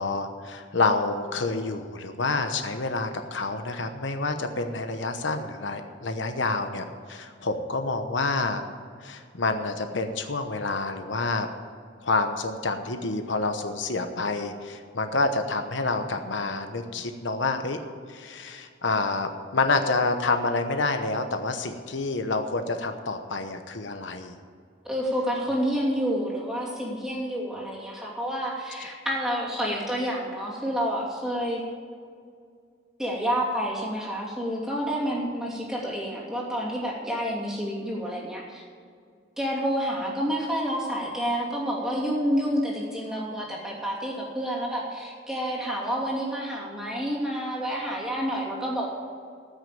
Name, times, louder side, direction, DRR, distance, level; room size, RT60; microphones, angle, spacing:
voice 1, 0.0-8.6 9.0-11.5 12.0-17.8 18.1-24.3 28.8-28.9, left 3 dB, 85° left, 7 dB, 1.0 m, -28 dB
voice 2, 24.8-31.6 33.0-38.6 39.4-48.9, equal, 5° right, -5 dB, 2.8 m, -29 dB
14.5 x 6.4 x 8.6 m, 2.2 s
head